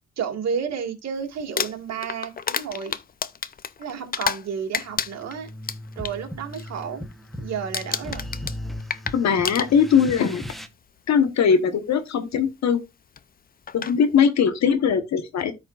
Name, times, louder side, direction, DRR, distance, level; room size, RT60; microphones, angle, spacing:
voice 1, 0.2-3.0 3.8-5.5 6.0-7.1 7.4-8.3, right 7 dB, 60° right, 2.2 m, -31 dB
Crumpling crinkling, 1.4-4.5 4.7-6.1 6.5-6.8 7.1-7.4 7.7-10.1 11.1-11.2 13.2-13.3 13.7-14.0, left 7 dB, 30° left, 0.5 m, -30 dB
sound 1, 4.9-10.7, left 1 dB, ahead, 1.0 m, -37 dB
voice 2, 9.1-10.4 11.1-12.8 13.7-15.5, left 7 dB, 65° left, 1.2 m, -20 dB
13.0 x 5.1 x 2.4 m
cardioid pair, 90°, 30 cm